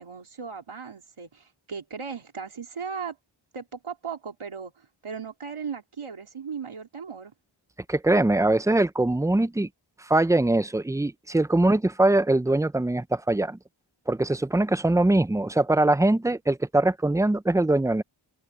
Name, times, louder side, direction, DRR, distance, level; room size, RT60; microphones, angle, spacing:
voice 1, 0.0-3.2 3.5-7.3, right 6 dB, 80° right, 3.1 m, -37 dB
voice 2, 7.9-9.7 10.0-13.6 14.1-18.0, right 2 dB, 5° right, 0.4 m, -22 dB
open air
wide cardioid pair, 80°, 49 cm